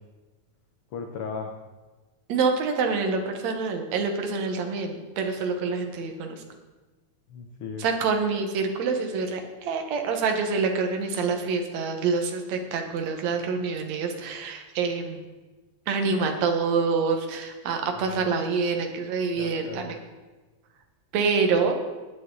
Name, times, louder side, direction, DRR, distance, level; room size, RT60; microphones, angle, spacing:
voice 1, 0.9-1.6 7.3-7.8 18.0-18.3 19.4-20.0, left 5 dB, 65° left, 4 dB, 1.5 m, -36 dB
voice 2, 2.3-6.4 7.8-15.2 15.9-20.0 21.1-21.7, right 4 dB, 70° right, 4 dB, 2.5 m, -26 dB
18.0 x 9.5 x 3.9 m, 1.2 s
omnidirectional pair, 3.3 m